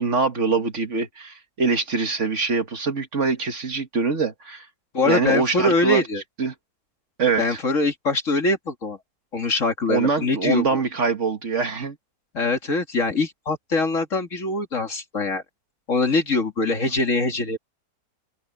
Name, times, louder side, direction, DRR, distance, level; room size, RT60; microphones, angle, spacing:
voice 1, 0.0-4.7 5.1-6.0 6.4-6.5 7.2-7.6 9.9-12.0, right 4 dB, 50° right, 1.7 m, -24 dB
voice 2, 4.9-6.2 7.4-9.0 9.3-10.8 12.3-15.4 15.9-17.6, left 2 dB, 50° left, 2.6 m, -23 dB
open air
omnidirectional pair, 1.7 m